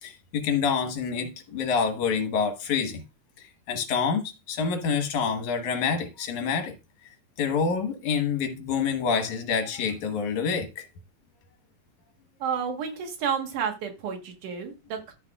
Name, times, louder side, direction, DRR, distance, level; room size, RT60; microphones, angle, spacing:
voice 1, 0.0-3.0 3.4-6.7 7.4-10.9, left 6 dB, 75° left, 2.8 m, -27 dB
voice 2, 12.4-15.1, right 7 dB, 90° right, 3.1 m, -31 dB
14.0 x 5.9 x 2.4 m
omnidirectional pair, 3.4 m